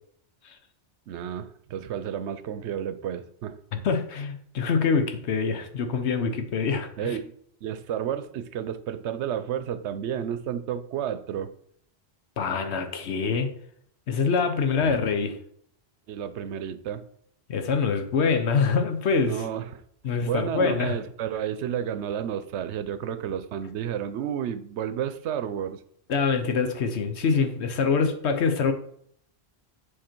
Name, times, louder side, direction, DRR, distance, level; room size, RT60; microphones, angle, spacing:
voice 1, 1.1-3.6 7.0-7.3 7.6-11.5 14.8-15.0 16.1-17.0 19.2-19.8 20.2-25.8 27.8-27.9, right 9 dB, 90° right, 13 dB, 0.9 m, -31 dB
voice 2, 3.7-7.2 12.4-13.5 14.1-15.4 17.5-19.4 20.0-20.9 26.1-28.7, left 5 dB, 80° left, 7 dB, 1.2 m, -25 dB
7.5 x 4.4 x 4.5 m, 0.66 s
omnidirectional pair, 1.1 m